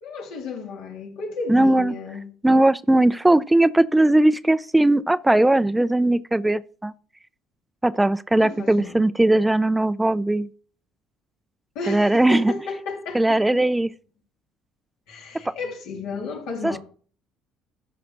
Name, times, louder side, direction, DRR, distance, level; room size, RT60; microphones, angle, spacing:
voice 1, 0.0-2.3 8.4-9.0 11.7-13.6 15.1-16.8, left 4 dB, 80° left, 3.0 m, -33 dB
voice 2, 1.5-2.0 2.4-6.9 7.8-10.5 11.9-12.5 13.1-13.9 16.6-16.8, right 1 dB, 10° right, 0.5 m, -19 dB
13.0 x 5.0 x 5.7 m
supercardioid pair, 80°, 0 cm